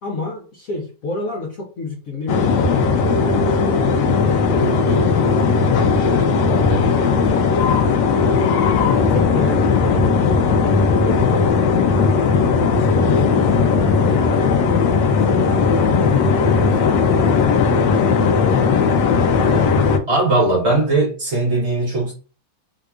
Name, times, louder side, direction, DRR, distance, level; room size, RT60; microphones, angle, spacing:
voice 1, 0.0-3.6 4.5-8.1 9.1-11.4 12.7-14.8 15.1-19.5, left 2 dB, 60° left, 0.9 m, -31 dB
sound 1, 2.3-20.0, left 5 dB, 75° left, 1.2 m, -17 dB
voice 2, 20.1-22.1, right 2 dB, 45° right, 1.0 m, -18 dB
3.7 x 2.8 x 2.3 m
omnidirectional pair, 2.1 m